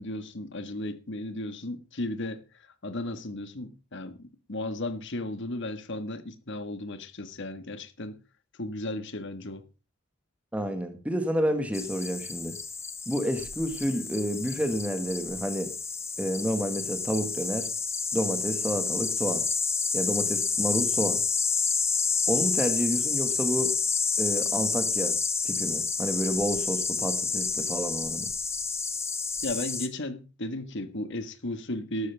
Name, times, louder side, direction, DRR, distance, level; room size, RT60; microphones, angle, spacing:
voice 1, 0.0-2.4 2.8-8.2 8.6-9.6 29.4-32.1, left 1 dB, 55° left, 1.7 m, -35 dB
voice 2, 10.5-12.6 13.1-15.7 16.2-17.7 18.1-19.4 19.9-21.2 22.3-23.7 24.2-25.2 25.4-28.3, equal, 5° right, 1.8 m, -29 dB
sound 1, 11.7-29.9, left 5 dB, 15° left, 1.1 m, -29 dB
13.5 x 13.0 x 3.6 m
head